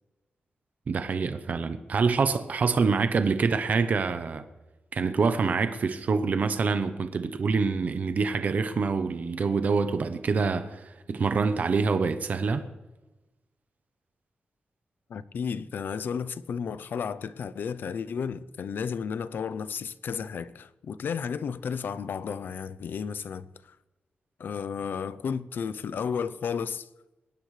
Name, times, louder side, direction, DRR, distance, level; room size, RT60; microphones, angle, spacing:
voice 1, 0.9-4.5 4.9-12.7, right 4 dB, 50° right, 0.8 m, -26 dB
voice 2, 15.1-23.8 24.4-26.9, left 6 dB, 70° left, 0.5 m, -33 dB
21.0 x 18.0 x 3.3 m
wide cardioid pair, 175°, 4 cm